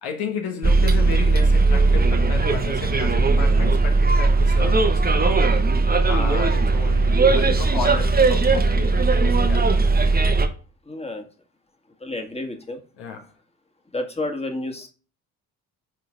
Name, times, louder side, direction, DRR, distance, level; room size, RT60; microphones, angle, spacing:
voice 1, 0.0-5.6 6.0-9.7 13.0-13.3, left 6 dB, 60° left, 1.5 m, -33 dB
Bus, 0.6-10.5, right 3 dB, 20° right, 1.2 m, -18 dB
voice 2, 10.9-11.3 12.0-12.8 13.9-14.9, left 2 dB, 15° left, 1.8 m, -30 dB
7.6 x 5.2 x 3.6 m
figure-of-eight pair, 50°, 42 cm